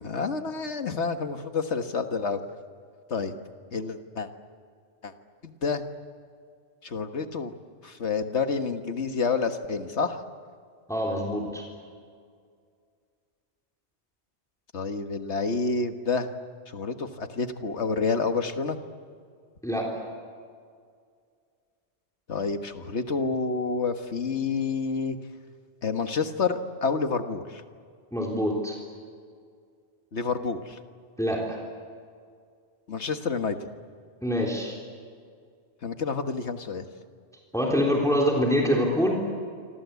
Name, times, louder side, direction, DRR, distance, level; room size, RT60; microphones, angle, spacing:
voice 1, 0.0-2.4 3.1-3.3 3.7-4.3 5.0-5.1 5.4-5.8 6.8-7.5 7.8-10.2 14.7-16.3 16.7-18.8 22.3-25.2 25.8-27.6 30.1-30.8 32.9-33.6 35.8-36.9, left 4 dB, 75° left, 7 dB, 1.8 m, -28 dB
voice 2, 10.9-11.7 19.6-20.0 28.1-28.8 31.2-31.6 34.2-34.8 37.5-39.2, equal, 5° left, -2 dB, 3.6 m, -25 dB
26.5 x 26.0 x 8.3 m, 2.1 s
omnidirectional pair, 1.2 m